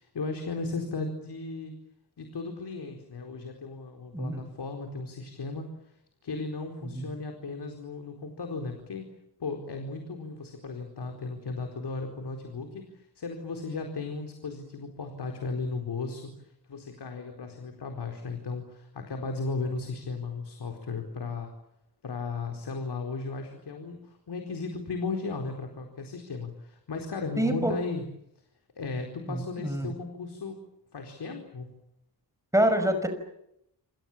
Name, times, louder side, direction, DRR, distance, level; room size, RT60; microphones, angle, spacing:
voice 1, 0.0-1.7 2.2-5.7 6.2-9.1 9.4-21.5 22.0-28.0 28.8-30.6 30.9-31.7, left 3 dB, 80° left, 4 dB, 4.5 m, -36 dB
voice 2, 27.4-27.7 29.3-29.9 32.5-33.1, right 1 dB, 10° right, 7 dB, 5.5 m, -26 dB
28.0 x 28.0 x 7.5 m, 0.80 s
wide cardioid pair, 150°, 39 cm